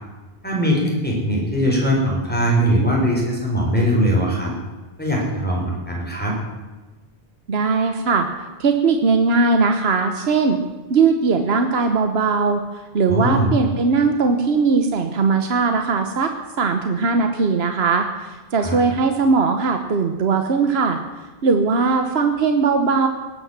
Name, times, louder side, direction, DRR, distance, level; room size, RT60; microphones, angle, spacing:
voice 1, 0.4-4.5 5.0-6.3 13.1-13.5 18.6-18.8, equal, 10° left, -3 dB, 4.8 m, -20 dB
voice 2, 7.5-8.3 8.6-10.6 10.9-16.3 16.6-21.0 21.4-23.1, right 4 dB, 80° right, 6 dB, 1.3 m, -19 dB
18.5 x 9.1 x 7.3 m, 1.2 s
omnidirectional pair, 1.0 m